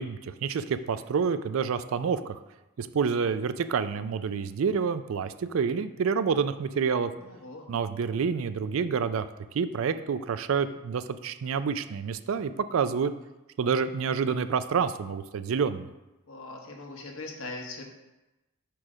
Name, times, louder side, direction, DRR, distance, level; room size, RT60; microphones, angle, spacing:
voice 1, 0.0-2.4 2.8-7.1 7.7-9.3 9.5-13.1 13.6-15.9, right 6 dB, 70° right, 12 dB, 0.4 m, -28 dB
voice 2, 7.3-7.7 16.3-17.8, left 2 dB, 70° left, 1 dB, 1.1 m, -40 dB
4.8 x 4.5 x 6.1 m, 1.0 s
head